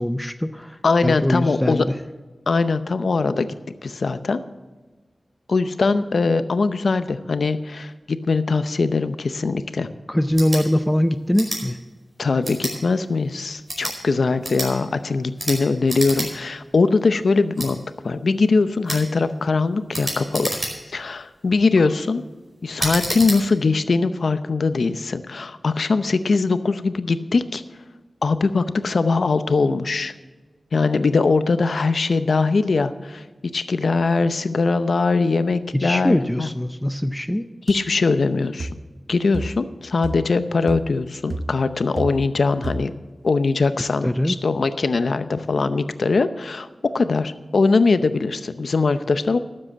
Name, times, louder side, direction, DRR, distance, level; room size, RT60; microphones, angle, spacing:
voice 1, 0.0-2.0 10.1-11.8 35.7-37.5 43.8-44.4, left 1 dB, 10° left, 11 dB, 0.5 m, -22 dB
voice 2, 0.8-1.8 2.5-3.5 3.8-4.4 5.5-9.9 12.2-20.5 20.9-22.2 22.6-27.6 28.2-30.1 30.7-33.2 33.5-36.5 37.7-38.7 39.1-42.9 43.2-46.7 46.9-49.4, left 4 dB, 80° left, 12 dB, 0.6 m, -21 dB
sound 1, 10.3-10.6 11.3-11.6 12.4-12.8 13.6-14.0 14.4-14.7 15.4-15.6 15.9-16.3 16.6-16.7 17.6-17.7 18.9-19.0 19.9-21.0 21.5-21.8 22.8-23.4, right 1 dB, 30° right, 5.1 m, -28 dB
sound 2, 37.7-37.8 38.6-38.9 39.3-39.7 40.0-40.4 40.7-41.0 41.3-42.4 42.6-43.0, right 2 dB, 60° right, 0.7 m, -31 dB
12.5 x 7.7 x 7.4 m, 1.3 s
wide cardioid pair, 80°, 0 cm